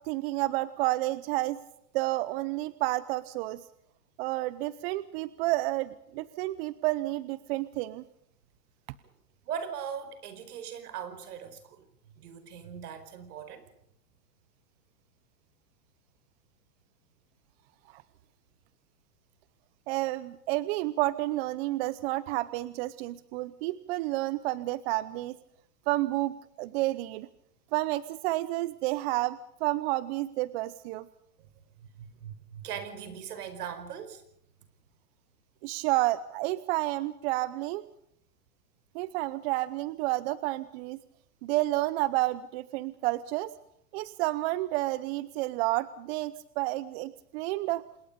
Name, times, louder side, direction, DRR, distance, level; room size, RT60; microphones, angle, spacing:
voice 1, 0.0-1.6 1.9-3.6 4.2-8.0 17.9-18.0 19.9-25.4 25.9-27.3 27.7-31.1 35.6-37.9 38.9-41.0 41.4-43.5 43.9-47.8, right 18 dB, 40° right, 0.8 m, -30 dB
voice 2, 9.4-11.8 12.2-13.7 31.8-34.2, right 8 dB, 70° right, 5.1 m, -40 dB
27.0 x 21.0 x 5.3 m
hypercardioid pair, 130°, 48 cm